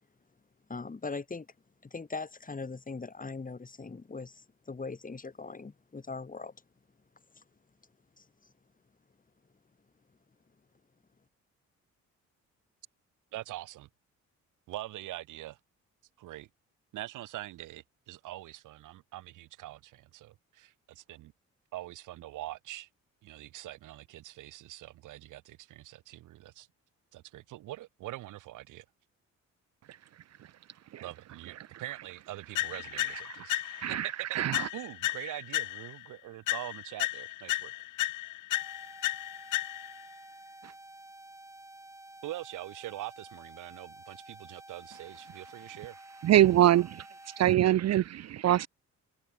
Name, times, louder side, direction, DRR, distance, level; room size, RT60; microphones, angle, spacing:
voice 1, 0.7-1.5 1.8-6.5 7.4-7.5 8.2-8.3, left 4 dB, 25° left, 7.6 m, -40 dB
voice 2, 13.3-13.9 14.7-15.6 16.2-16.5 16.9-21.3 21.7-22.9 23.2-26.7 27.1-28.8 31.0-33.6 33.9-37.8 42.2-46.0, right 15 dB, 90° right, 4.2 m, -43 dB
sound 1, 32.5-34.0 34.5-36.1 36.5-40.1, left 17 dB, 85° left, 0.9 m, -34 dB
voice 3, 33.4-34.7 40.6-40.7 46.2-48.7, right 12 dB, 60° right, 0.7 m, -25 dB
sound 2, 38.5-47.5, right 1 dB, 10° right, 3.7 m, -51 dB
cardioid pair, 90°, 30 cm